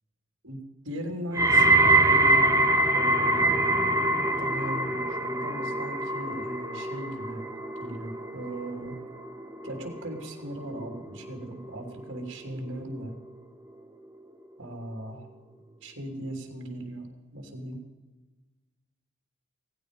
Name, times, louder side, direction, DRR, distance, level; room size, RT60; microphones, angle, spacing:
voice 1, 0.4-3.5 4.3-7.5 7.8-9.0 9.6-13.2 14.6-15.3 15.8-17.9, right 1 dB, 55° right, 4 dB, 3.1 m, -38 dB
sound 1, 1.3-12.5 12.8-13.3 14.0-14.1, right 2 dB, 15° right, 0.7 m, -25 dB
17.5 x 15.5 x 5.2 m, 1.2 s
head